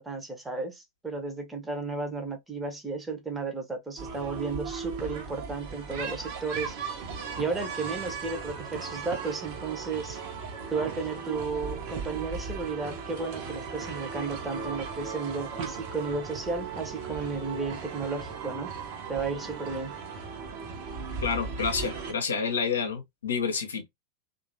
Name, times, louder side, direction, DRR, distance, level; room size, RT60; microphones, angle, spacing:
voice 1, 0.0-6.8 7.4-10.2 10.7-18.7 19.1-19.9, right 4 dB, 10° right, 0.8 m, -33 dB
sound 1, 4.0-22.1, right 5 dB, 50° right, 0.9 m, -37 dB
voice 2, 21.2-23.9, left 5 dB, 70° left, 0.8 m, -29 dB
3.0 x 2.5 x 2.7 m
figure-of-eight pair, 90°, 0 cm